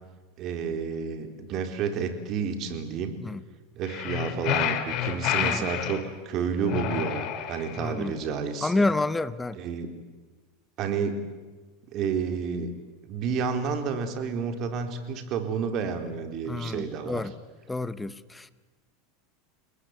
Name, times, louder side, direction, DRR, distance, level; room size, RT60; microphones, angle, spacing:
voice 1, 0.4-3.2 3.8-8.9 9.6-9.9 10.8-11.2 11.9-12.7 13.0-17.3, right 6 dB, 45° right, 4.0 m, -30 dB
sound 1, 3.8-6.0 6.7-7.9, left 10 dB, 50° left, 3.6 m, -29 dB
voice 2, 7.8-8.1 8.6-9.6 16.5-17.3 17.7-18.5, left 2 dB, 10° left, 1.0 m, -29 dB
29.5 x 19.5 x 9.5 m
supercardioid pair, 125°, 0 cm